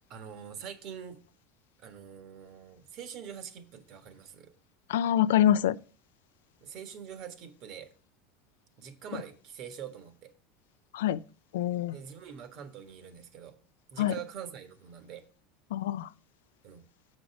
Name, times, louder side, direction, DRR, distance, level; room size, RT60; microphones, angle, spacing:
voice 1, 0.1-1.2 1.8-4.5 6.6-7.9 8.8-10.3 11.9-13.6 13.9-15.2 16.6-16.9, right 8 dB, 55° right, 1.4 m, -44 dB
voice 2, 4.9-5.8 10.9-11.2 11.5-11.9 14.0-14.1 15.7-16.1, left 11 dB, 90° left, 0.3 m, -25 dB
7.1 x 5.2 x 5.9 m
supercardioid pair, 120°, 0 cm